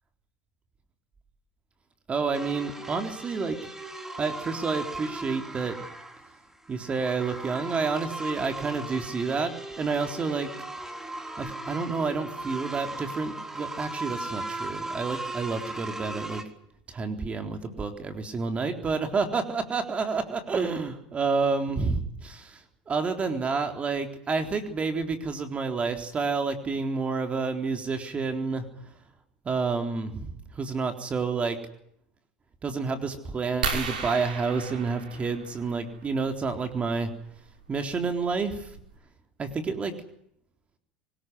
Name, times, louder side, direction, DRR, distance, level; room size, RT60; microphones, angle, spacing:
voice 1, 2.1-3.6 4.2-5.8 6.7-10.5 11.4-16.4 16.9-22.6 22.9-28.7 29.5-31.6 32.6-37.1 37.7-38.7 39.4-39.9, right 4 dB, 25° right, 6 dB, 3.8 m, -29 dB
sound 1, 2.3-16.4, right 2 dB, 10° right, 3.7 m, -38 dB
sound 2, 33.6-36.0 37.6-37.8 38.4-38.5 38.7-39.0, right 5 dB, 85° right, 5.6 m, -34 dB
24.0 x 20.5 x 9.5 m, 0.73 s
hypercardioid pair, 90°, 4 cm